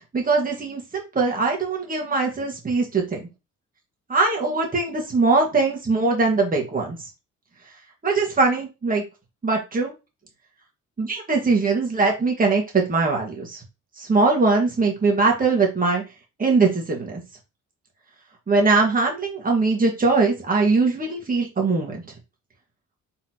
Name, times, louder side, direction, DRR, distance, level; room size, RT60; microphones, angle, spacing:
voice 1, 0.1-3.2 4.1-7.0 8.0-9.0 9.4-9.9 11.0-13.6 14.0-16.0 16.4-17.2 18.5-22.0, right 3 dB, 30° right, -1 dB, 2.0 m, -21 dB
4.2 x 3.6 x 3.1 m, 0.27 s
cardioid pair, 90°, 30 cm